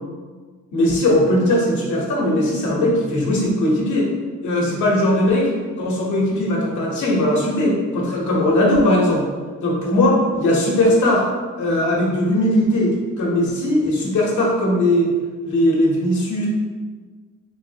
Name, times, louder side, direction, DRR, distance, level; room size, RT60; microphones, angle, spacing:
voice 1, 0.7-4.1 4.4-5.5 5.8-9.2 9.6-11.2 11.6-15.1 15.4-16.5, left 1 dB, 75° left, -3 dB, 1.1 m, -19 dB
3.5 x 3.2 x 2.8 m, 1.5 s
cardioid pair, 90°, 30 cm